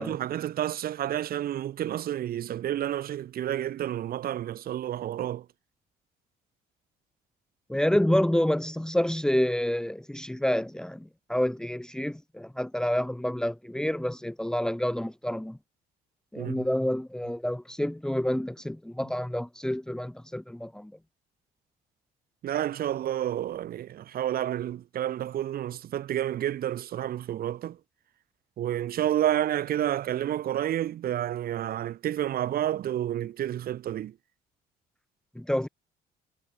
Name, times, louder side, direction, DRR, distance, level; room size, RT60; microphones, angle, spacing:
voice 1, 0.0-5.4 16.4-16.6 22.4-27.8 28.6-34.1, right 11 dB, 60° right, 4.6 m, -30 dB
voice 2, 7.7-15.6 16.3-20.9 35.3-35.7, left 1 dB, 5° left, 1.2 m, -28 dB
cardioid pair, 110°, 17 cm